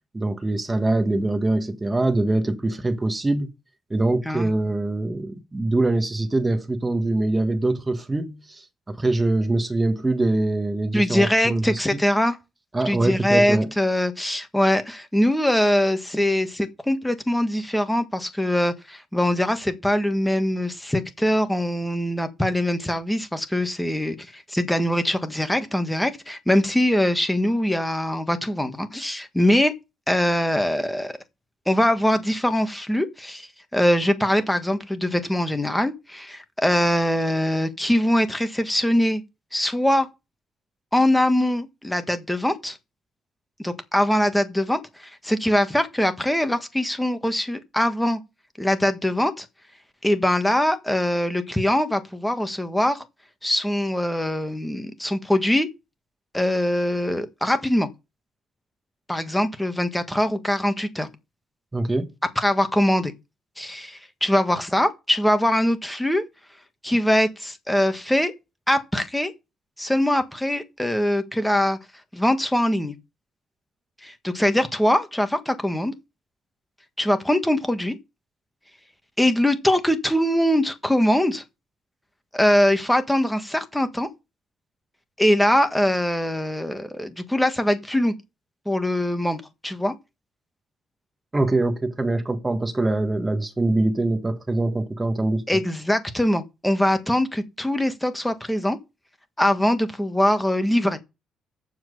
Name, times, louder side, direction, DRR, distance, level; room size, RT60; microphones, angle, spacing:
voice 1, 0.1-3.5 3.9-11.8 12.7-13.7 61.7-62.1 91.3-95.4, right 2 dB, 20° right, 1.4 m, -23 dB
voice 2, 10.9-12.4 12.8-29.7 30.1-31.2 31.7-39.2 39.5-40.1 40.9-42.8 43.6-48.2 48.6-49.5 50.0-53.0 53.4-55.7 56.3-57.9 59.1-61.1 62.3-63.1 63.6-66.2 66.8-68.3 68.7-69.3 69.8-71.8 72.1-72.9 74.0-75.9 77.0-78.0 79.2-81.4 82.3-84.1 85.2-88.1 88.6-89.9 95.5-98.8 99.4-101.0, left 1 dB, 5° left, 1.5 m, -22 dB
7.3 x 5.9 x 6.6 m
cardioid pair, 90°, 0 cm